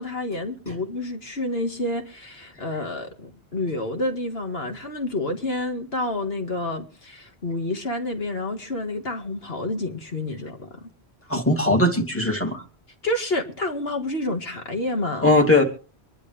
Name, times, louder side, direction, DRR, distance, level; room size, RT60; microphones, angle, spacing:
voice 1, 0.0-10.9 13.0-15.3, left 2 dB, 65° left, 2.1 m, -29 dB
voice 2, 11.3-12.6 15.2-15.6, left 2 dB, 10° left, 2.7 m, -19 dB
26.0 x 11.0 x 3.4 m
omnidirectional pair, 1.1 m